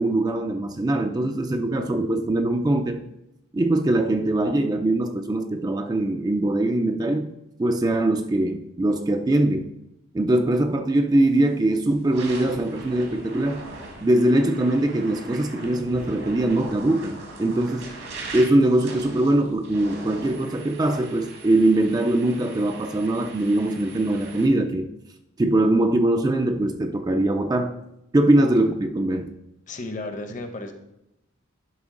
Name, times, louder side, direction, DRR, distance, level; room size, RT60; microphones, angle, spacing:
voice 1, 0.0-3.0 3.5-7.3 7.6-9.7 10.1-13.7 14.0-17.9 18.3-24.9 25.4-27.8 28.1-29.3, right 1 dB, 20° right, 6 dB, 0.3 m, -22 dB
sound 1, 11.3-11.5 12.0-24.5, right 2 dB, 75° right, 1.6 m, -41 dB
voice 2, 29.7-30.7, left 2 dB, 40° left, 7 dB, 0.7 m, -33 dB
11.0 x 3.6 x 3.7 m, 0.86 s
head